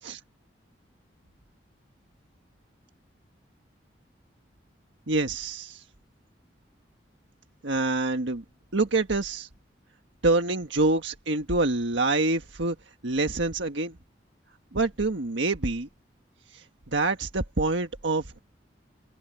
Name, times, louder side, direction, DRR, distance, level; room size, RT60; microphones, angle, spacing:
voice 1, 5.1-5.8 7.6-8.4 8.7-9.5 10.2-12.7 13.0-14.0 14.7-15.9 16.5-16.6 16.9-18.4, right 2 dB, 80° right, 1.5 m, -26 dB
open air
head